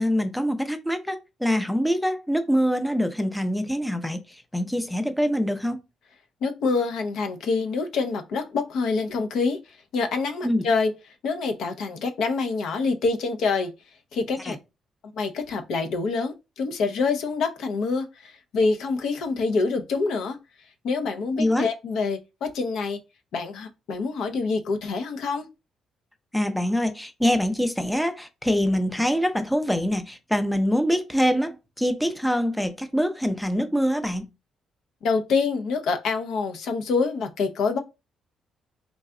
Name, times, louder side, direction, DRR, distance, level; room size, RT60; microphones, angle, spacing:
voice 1, 0.0-4.2 4.5-5.8 10.4-10.6 14.5-14.6 21.4-21.7 26.3-34.3, equal, 5° left, 0.6 m, -24 dB
voice 2, 6.4-9.6 9.9-10.9 11.2-13.7 14.1-14.6 15.1-20.4 20.8-23.0 23.3-25.5 35.0-37.8, left 4 dB, 75° left, 0.8 m, -26 dB
3.9 x 2.3 x 3.7 m
cardioid pair, 90°, 0 cm